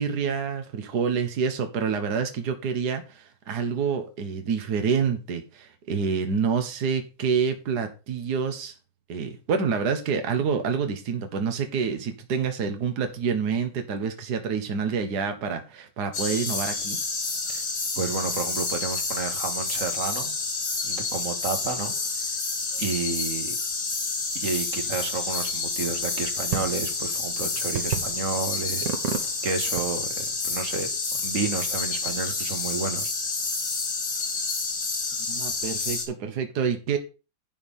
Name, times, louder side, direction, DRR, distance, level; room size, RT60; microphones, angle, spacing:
voice 1, 0.0-8.7 9.1-17.0 35.3-37.0, right 6 dB, 65° right, 1.8 m, -27 dB
sound 1, 16.1-36.1, left 4 dB, 75° left, 2.8 m, -29 dB
voice 2, 18.0-20.4 20.8-21.9 22.8-23.6 24.4-28.9 29.4-30.9 31.2-33.1, right 4 dB, 50° right, 2.0 m, -31 dB
sound 2, 25.8-30.8, right 7 dB, 80° right, 1.9 m, -35 dB
11.0 x 4.8 x 5.4 m
omnidirectional pair, 1.9 m